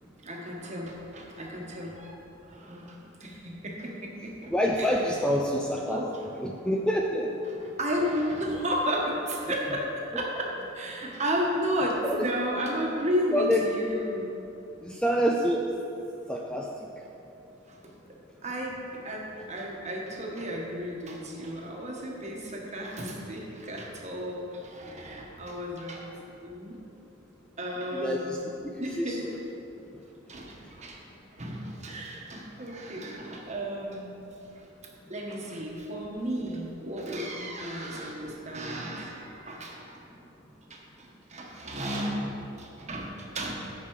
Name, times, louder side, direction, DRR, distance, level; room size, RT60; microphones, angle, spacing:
voice 1, 0.2-2.1 2.5-5.1 5.9-6.3 7.5-9.9 10.1-14.4 17.7-17.9 18.4-26.1 26.4-26.8 27.6-28.5 28.8-29.2 30.3-31.0 31.3-34.1 34.5-34.6 35.1-40.0 40.7-43.7, equal, 35° right, -1 dB, 1.3 m, -33 dB
voice 2, 4.5-6.0 6.4-7.3 12.0-12.3 13.3-13.7 14.8-15.6 16.3-16.7 27.9-28.3 29.0-29.3, equal, 5° left, -1 dB, 0.4 m, -26 dB
9.1 x 5.9 x 4.7 m, 2.9 s
head